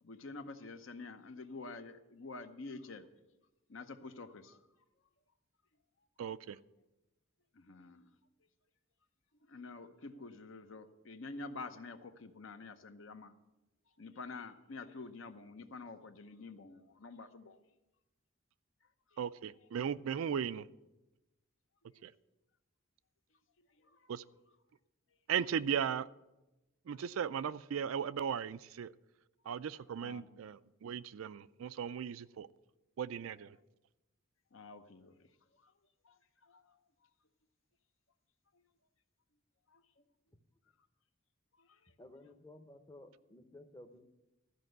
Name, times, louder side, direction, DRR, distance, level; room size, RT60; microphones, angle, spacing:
voice 1, 0.0-3.1 3.7-4.7 6.0-6.1 7.5-8.2 9.4-13.3 14.0-17.6 18.8-19.2 21.9-22.1 23.3-24.1 26.9-27.0 30.0-30.4 34.5-35.7 36.0-37.1 38.5-38.6 39.7-40.0 41.5-41.9, left 3 dB, 65° left, 0.8 m, -49 dB
voice 2, 6.2-6.6 19.2-20.7 22.0-22.1 24.1-24.2 25.3-26.1 26.9-28.9 29.5-32.5 33.0-33.6, right 8 dB, 85° right, 0.4 m, -37 dB
voice 3, 42.0-44.0, left 1 dB, 20° left, 0.7 m, -55 dB
13.5 x 5.3 x 7.8 m
head